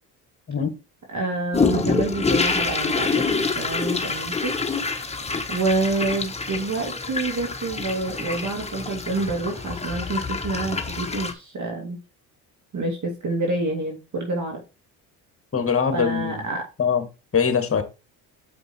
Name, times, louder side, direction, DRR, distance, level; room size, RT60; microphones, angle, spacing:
voice 1, 1.1-4.6 5.5-12.0 12.7-14.6 15.9-16.7, right 2 dB, 40° right, 2.7 m, -27 dB
sound 1, 1.5-11.3, left 4 dB, 15° left, 1.4 m, -26 dB
voice 2, 15.5-16.4 16.8-17.0 17.3-17.8, left 6 dB, 30° left, 2.0 m, -22 dB
6.9 x 5.3 x 4.4 m
supercardioid pair, 70°, 44 cm